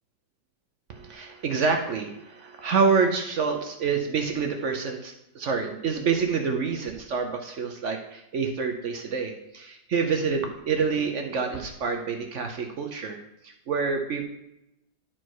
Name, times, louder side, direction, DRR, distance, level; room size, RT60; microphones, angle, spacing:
voice 1, 0.9-14.2, right 5 dB, 65° right, 4 dB, 0.7 m, -27 dB
10.0 x 4.5 x 4.6 m, 0.84 s
omnidirectional pair, 2.1 m